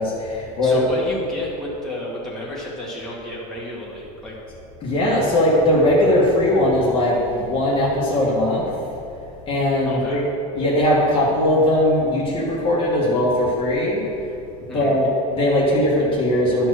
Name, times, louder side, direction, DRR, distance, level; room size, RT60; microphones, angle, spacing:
voice 1, 0.0-0.8 4.8-8.7 9.5-10.2 10.6-14.0 14.7-16.7, left 1 dB, 30° left, -5 dB, 1.8 m, -19 dB
voice 2, 0.6-4.4 9.8-10.2 14.7-15.0, left 1 dB, 5° left, -7 dB, 2.1 m, -32 dB
11.5 x 4.5 x 6.5 m, 2.6 s
supercardioid pair, 140°, 18 cm